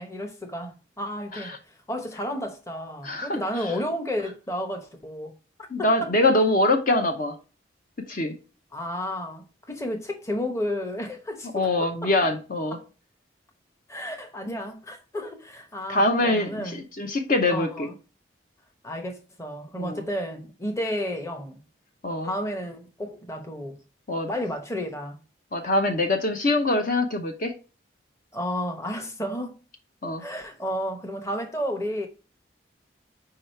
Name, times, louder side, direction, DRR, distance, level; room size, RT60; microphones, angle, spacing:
voice 1, 0.0-1.5 1.9-5.3 5.8-6.1 8.7-12.3 12.7-12.9 13.9-16.8 17.5-17.9 18.8-21.6 22.2-23.8 24.3-25.2 28.3-29.5 30.2-32.1, equal, 15° left, 0.8 m, -32 dB
voice 2, 3.0-3.8 5.7-7.4 8.1-8.4 11.5-12.8 14.5-14.6 15.9-17.9 19.8-20.0 22.0-22.3 24.1-24.3 25.5-27.5 30.0-30.2, left 2 dB, 45° left, 0.7 m, -24 dB
4.8 x 4.7 x 4.4 m
head